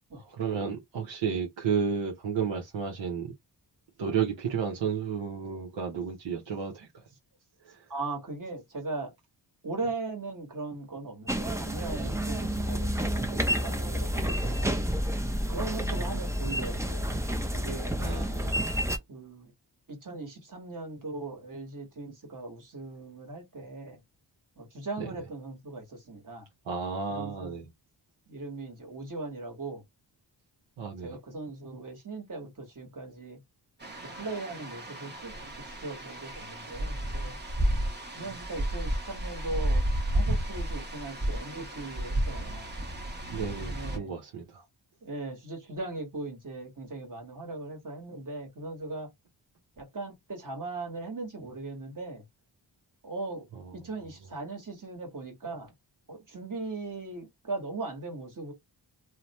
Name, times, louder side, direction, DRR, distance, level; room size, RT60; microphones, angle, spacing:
voice 1, 0.1-3.3 4.0-6.9 7.7-7.8 12.6-12.7 18.0-18.5 25.0-25.2 26.7-27.6 30.8-31.2 43.3-44.6 53.5-53.8, right 6 dB, 75° right, 0.8 m, -32 dB
voice 2, 7.9-9.1 9.6-14.8 15.5-17.2 17.5-17.9 19.1-19.5 19.9-24.0 24.6-26.4 27.1-27.6 28.3-29.8 31.0-33.4 34.1-35.3 35.8-37.4 38.1-39.8 40.1-42.7 43.6-44.1 45.0-49.1 49.8-52.2 53.0-53.5 53.7-55.7 56.1-58.5, right 3 dB, 45° right, 1.5 m, -39 dB
sound 1, 11.3-19.0, equal, 5° right, 0.5 m, -30 dB
sound 2, 33.8-44.0, right 1 dB, 25° right, 0.9 m, -32 dB
2.8 x 2.1 x 2.9 m
cardioid pair, 60°, 44 cm